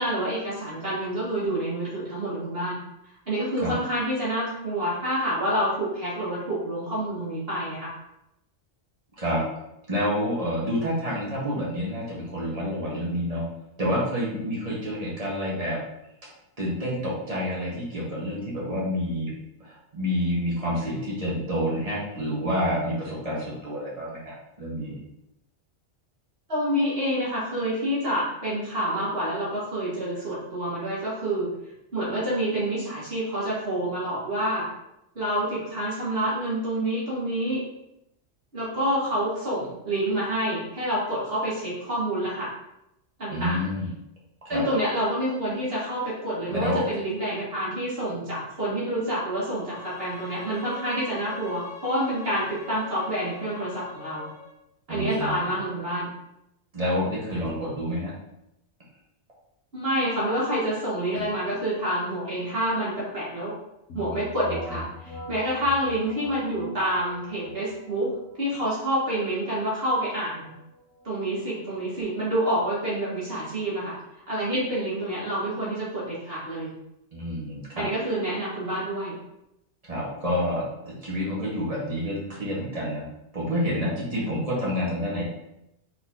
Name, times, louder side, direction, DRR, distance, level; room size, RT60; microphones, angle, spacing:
voice 1, 0.0-2.8 3.3-7.9 26.5-31.5 31.9-34.7 35.2-37.6 38.5-42.5 43.2-43.6 44.5-54.3 54.9-56.1 59.7-63.5 63.9-70.5 71.0-74.0 74.3-76.7 77.8-79.1, right 1 dB, 50° right, -8 dB, 2.0 m, -28 dB
voice 2, 9.9-13.4 13.8-15.8 16.2-16.3 16.6-19.3 19.6-25.0 43.3-43.9 44.4-44.6 46.5-46.8 54.9-55.6 56.7-58.1 77.1-77.8 79.8-83.1 83.3-85.2, equal, 30° right, -5 dB, 1.4 m, -28 dB
Bowed string instrument, 49.4-54.6, left 4 dB, 55° left, 0.4 m, -43 dB
sound 1, 63.9-73.5, left 1 dB, 80° left, 1.3 m, -44 dB
4.3 x 4.0 x 2.8 m, 0.84 s
omnidirectional pair, 1.3 m